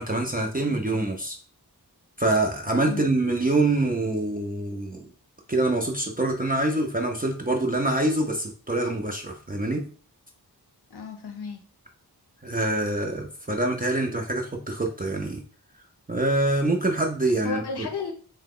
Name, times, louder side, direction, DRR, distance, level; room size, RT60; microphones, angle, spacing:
voice 1, 0.0-1.4 2.2-5.1 5.5-9.8 12.4-15.4 16.1-17.9, right 2 dB, 25° right, 2 dB, 0.5 m, -25 dB
voice 2, 10.9-11.6 17.4-18.1, left 4 dB, 90° left, 5 dB, 0.6 m, -34 dB
2.8 x 2.1 x 3.6 m, 0.40 s
wide cardioid pair, 40°, 38 cm